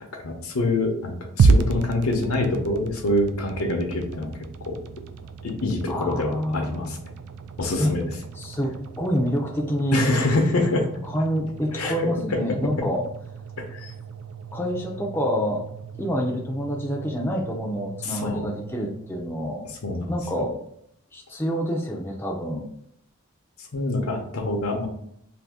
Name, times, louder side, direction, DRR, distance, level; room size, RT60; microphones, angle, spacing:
voice 1, 0.1-4.3 4.6-4.8 5.4-7.0 7.6-8.1 9.9-10.9 11.7-12.7 13.6-13.9 18.0-18.5 19.6-20.5 23.6-24.9, left 2 dB, 80° left, 3 dB, 0.7 m, -26 dB
sound 1, 1.4-19.6, right 4 dB, 85° right, 0.3 m, -31 dB
voice 2, 5.9-6.9 7.8-7.9 8.4-10.1 11.0-13.0 14.5-15.6 16.0-19.6 20.1-20.5 21.1-22.7, equal, 10° left, -2 dB, 0.4 m, -27 dB
2.7 x 2.7 x 3.4 m, 0.71 s
head